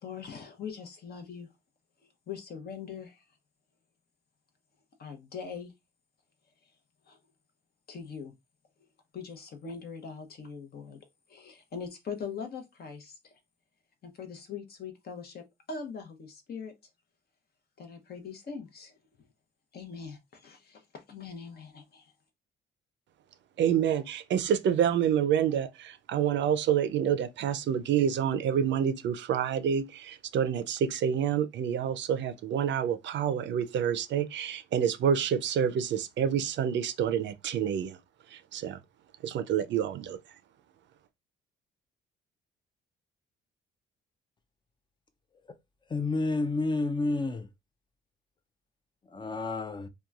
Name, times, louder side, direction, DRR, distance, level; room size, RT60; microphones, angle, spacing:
voice 1, 0.0-1.5 2.3-3.2 5.0-5.7 7.1-7.2 7.9-8.3 9.1-11.0 11.3-13.3 14.0-16.7 17.8-19.0 19.7-22.1, left 6 dB, 50° left, 0.8 m, -42 dB
voice 2, 23.6-38.0 38.3-38.8 39.2-40.4, right 8 dB, 65° right, 0.5 m, -28 dB
voice 3, 45.9-47.5 49.1-49.9, left 3 dB, 25° left, 0.4 m, -30 dB
2.9 x 2.3 x 2.3 m
cardioid pair, 90°, 20 cm